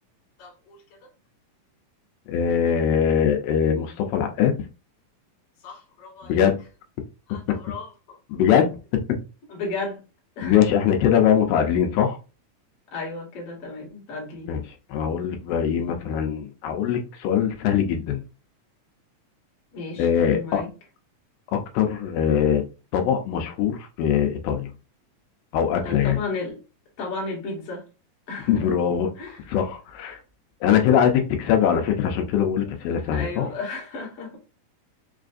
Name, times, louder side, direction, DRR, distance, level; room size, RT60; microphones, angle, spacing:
voice 1, 0.4-1.1 5.6-6.4 7.3-8.2 9.5-10.0 10.4-10.6 12.9-14.5 19.7-20.7 25.8-26.6 27.0-27.9 28.3-28.7 29.2-29.6 30.8-30.9 32.6-34.4, left 3 dB, 55° left, 1.9 m, -34 dB
voice 2, 2.3-4.5 6.2-6.6 8.3-8.7 9.1-9.2 10.4-12.2 14.5-14.6 14.9-18.2 20.0-20.6 21.5-22.6 22.9-24.7 25.5-26.2 28.5-29.1 29.5-30.2 30.6-33.5, left 8 dB, 85° left, 2.3 m, -22 dB
5.5 x 2.5 x 2.4 m
omnidirectional pair, 3.9 m